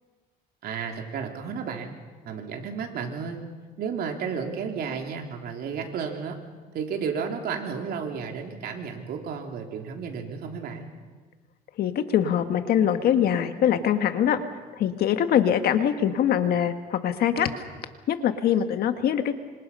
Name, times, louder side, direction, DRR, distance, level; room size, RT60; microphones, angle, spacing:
voice 1, 0.6-3.5 3.8-6.4 6.7-10.9, right 6 dB, 65° right, 3 dB, 3.4 m, -33 dB
voice 2, 11.8-14.4 14.8-17.5 18.1-19.3, left 9 dB, 65° left, 8 dB, 1.7 m, -23 dB
26.0 x 26.0 x 5.6 m, 1.4 s
cardioid pair, 110°, 17 cm